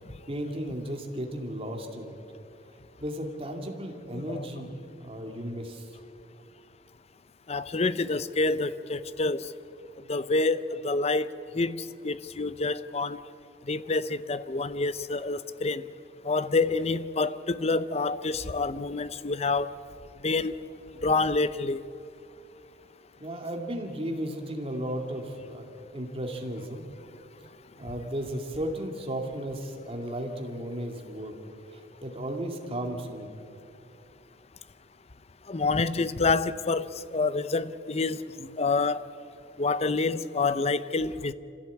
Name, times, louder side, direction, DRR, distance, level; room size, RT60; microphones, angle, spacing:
voice 1, 0.3-2.2 3.0-6.0 23.2-26.9 27.8-31.3 31.7-33.3, right 1 dB, 30° right, 2.3 m, -35 dB
voice 2, 4.1-4.5 7.5-9.5 10.1-13.2 13.7-15.8 16.2-19.7 20.2-20.6 21.0-21.8 35.5-39.0 39.6-41.3, left 3 dB, 35° left, 0.6 m, -27 dB
26.0 x 15.5 x 8.4 m
head